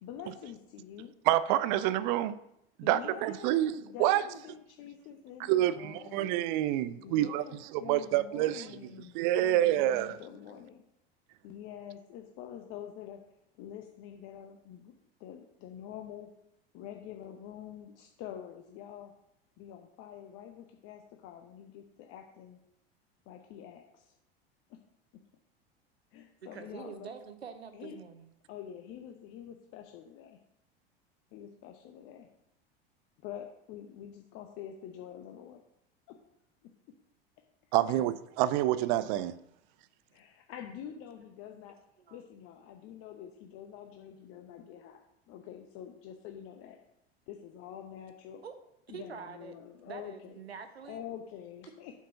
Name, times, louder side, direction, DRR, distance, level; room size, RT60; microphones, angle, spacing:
voice 1, 0.0-1.1 2.8-6.3 7.0-10.8 11.4-13.2 13.6-14.9 15.2-16.3 16.7-19.1 19.6-22.6 23.3-24.1 26.1-27.1 27.7-28.0 28.5-30.4 31.3-32.3 33.2-35.6 36.1-36.2 40.1-41.8 42.1-46.8 47.3-48.4 48.9-50.4 50.8-51.9, left 9 dB, 45° left, 0.9 m, -46 dB
voice 2, 1.3-2.3 2.8-4.2 5.5-7.4 7.7-8.7 9.1-10.2 37.7-38.1 38.4-39.4, right 13 dB, 50° right, 0.5 m, -27 dB
voice 3, 26.4-28.3 42.0-42.2 48.4-48.6 48.9-49.6 49.9-51.0, right 6 dB, 85° right, 1.0 m, -45 dB
8.0 x 4.6 x 5.5 m
figure-of-eight pair, 80°, 31 cm